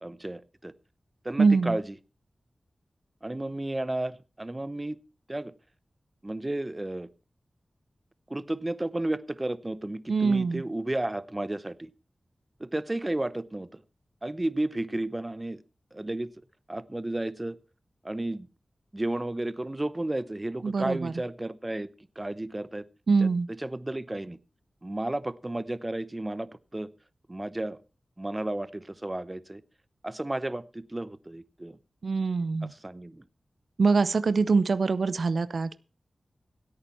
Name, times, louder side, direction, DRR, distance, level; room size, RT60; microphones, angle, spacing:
voice 1, 0.0-0.7 1.2-1.9 3.2-5.0 5.3-5.5 6.2-7.1 8.3-11.9 12.6-13.8 14.2-15.6 15.9-16.3 16.7-17.6 18.0-18.5 18.9-21.9 22.2-22.8 23.2-24.4 24.8-26.9 27.3-27.8 28.2-29.6 30.0-31.8 32.6-33.2, right 1 dB, 25° right, 0.9 m, -33 dB
voice 2, 1.4-1.7 10.1-10.6 20.6-21.1 23.1-23.5 32.0-32.7 33.8-35.8, right 4 dB, 75° right, 0.6 m, -24 dB
16.5 x 8.8 x 4.4 m
wide cardioid pair, 60°, 0 cm